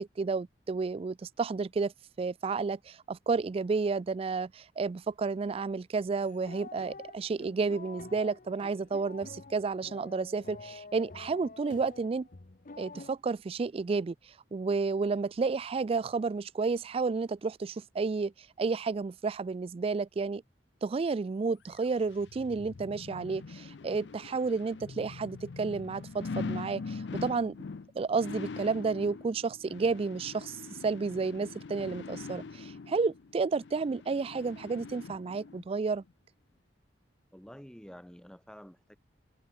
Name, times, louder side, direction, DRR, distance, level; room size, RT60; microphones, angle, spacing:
voice 1, 0.0-1.9 2.2-12.3 12.8-20.4 20.8-27.6 27.9-36.0, right 4 dB, 30° right, 0.3 m, -31 dB
sound 1, 6.2-13.1, left 3 dB, 45° left, 0.9 m, -48 dB
sound 2, 21.7-35.6 36.1-36.2, left 4 dB, 65° left, 0.5 m, -43 dB
voice 2, 37.3-39.0, equal, 5° left, 1.0 m, -49 dB
head